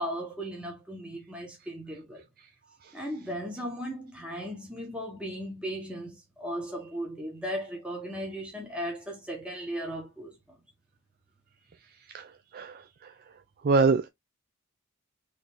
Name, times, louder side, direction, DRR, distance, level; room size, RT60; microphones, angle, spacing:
voice 1, 0.0-2.2 2.9-10.4, equal, 5° right, 1.0 m, -36 dB
voice 2, 12.1-13.1 13.6-14.1, right 4 dB, 45° right, 0.4 m, -26 dB
3.9 x 3.3 x 3.0 m
head